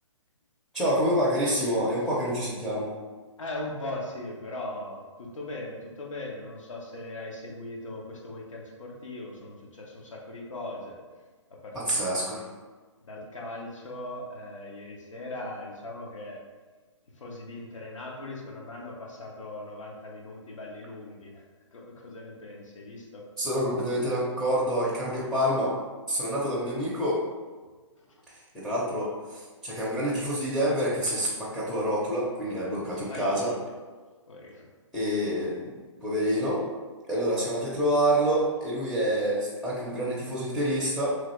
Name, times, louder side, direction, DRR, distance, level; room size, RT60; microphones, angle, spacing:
voice 1, 0.7-2.9 11.7-12.4 23.4-25.7 26.1-27.2 28.5-33.5 34.9-35.7 36.0-36.6 37.1-41.2, equal, ahead, -9 dB, 0.4 m, -27 dB
voice 2, 3.4-11.0 11.5-12.3 13.0-16.4 17.1-21.5 21.7-23.3 28.0-28.2 33.1-33.6 34.3-34.7, left 2 dB, 85° left, -2 dB, 0.8 m, -39 dB
3.1 x 2.4 x 3.0 m, 1.4 s
hypercardioid pair, 140°, 16 cm